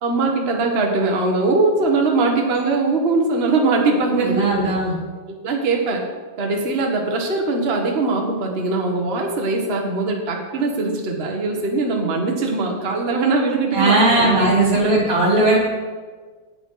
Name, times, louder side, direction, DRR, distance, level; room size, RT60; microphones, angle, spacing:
voice 1, 0.0-4.7 5.3-6.0 6.4-14.4 14.8-15.0, right 3 dB, 35° right, 1 dB, 0.9 m, -21 dB
voice 2, 4.2-4.9 13.7-15.6, right 2 dB, 20° right, -6 dB, 3.4 m, -17 dB
10.0 x 8.3 x 5.6 m, 1.4 s
omnidirectional pair, 3.4 m